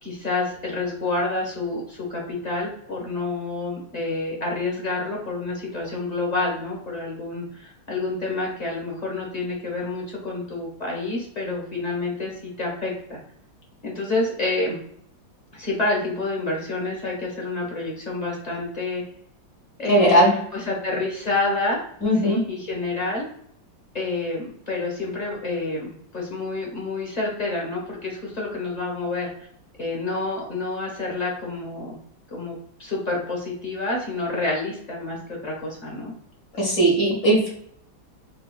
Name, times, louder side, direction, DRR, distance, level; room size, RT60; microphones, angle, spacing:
voice 1, 0.0-13.2 13.8-14.8 15.5-19.0 19.8-21.9 22.2-23.3 23.9-29.5 29.8-32.0 32.3-36.1, left 2 dB, 25° left, -2 dB, 1.1 m, -28 dB
voice 2, 19.9-20.3 22.0-22.4 36.5-37.5, right 1 dB, 55° left, -3 dB, 1.8 m, -18 dB
4.5 x 3.3 x 2.3 m, 0.66 s
omnidirectional pair, 2.1 m